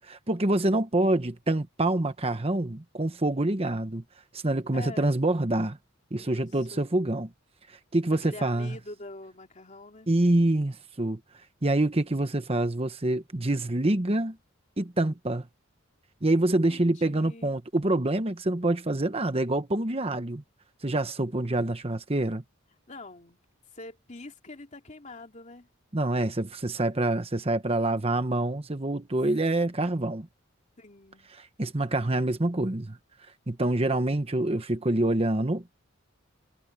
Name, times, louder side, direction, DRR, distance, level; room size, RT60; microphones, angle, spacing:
voice 1, 0.0-4.0 4.3-5.8 6.1-7.3 7.7-8.8 10.1-11.2 11.6-14.4 14.8-15.5 16.2-20.4 20.8-22.4 25.9-30.3 31.3-33.0 33.5-35.6, right 1 dB, 30° right, 1.1 m, -26 dB
voice 2, 4.7-5.2 6.2-6.9 8.2-10.1 16.5-17.5 22.9-23.4 23.7-25.7 30.8-31.4, left 2 dB, 35° left, 2.7 m, -45 dB
head